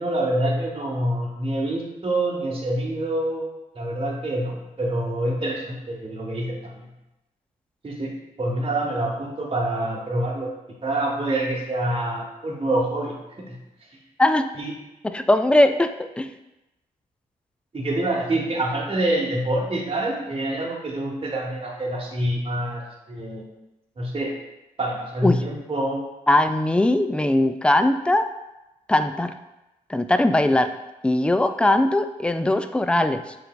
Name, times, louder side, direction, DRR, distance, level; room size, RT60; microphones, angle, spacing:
voice 1, 0.0-3.5 3.7-6.9 7.8-8.1 8.4-10.5 10.8-13.2 13.5-13.6 14.6-14.7 17.7-22.8 23.1-23.4 24.0-24.3 24.8-26.1, right 1 dB, 35° right, -1 dB, 1.1 m, -26 dB
voice 2, 15.0-16.3 25.2-25.4 26.3-28.3 28.9-29.3 29.9-30.7 31.0-33.4, left 1 dB, 5° left, 9 dB, 0.3 m, -20 dB
5.6 x 3.3 x 2.2 m, 0.97 s
supercardioid pair, 45°, 17 cm